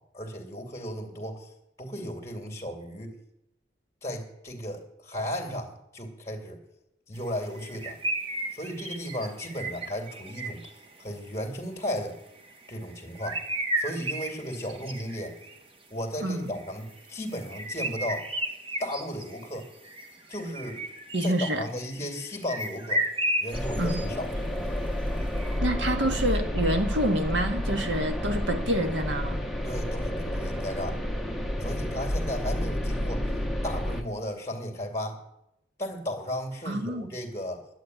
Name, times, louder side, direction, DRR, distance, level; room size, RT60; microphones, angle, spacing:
voice 1, 0.0-1.5 1.8-3.2 4.0-6.6 7.1-8.0 8.5-10.6 11.0-12.2 12.7-13.4 13.8-15.3 15.9-18.3 18.8-19.7 20.3-20.8 21.2-23.0 23.4-24.3 29.6-31.0 31.6-33.3 33.6-35.2 35.8-37.7, equal, 15° left, 3 dB, 2.2 m, -35 dB
sound 1, 7.6-10.8 12.4-12.7 13.0-15.6 16.4-24.1 24.3-24.4 25.2-25.6, right 1 dB, 30° right, 1.3 m, -34 dB
voice 2, 16.2-16.5 21.1-21.6 23.8-24.0 25.6-29.4 36.7-37.1, right 1 dB, 80° right, 5 dB, 1.8 m, -27 dB
sound 2, 23.5-34.0, equal, ahead, 1.1 m, -30 dB
11.0 x 9.2 x 9.2 m, 0.84 s
head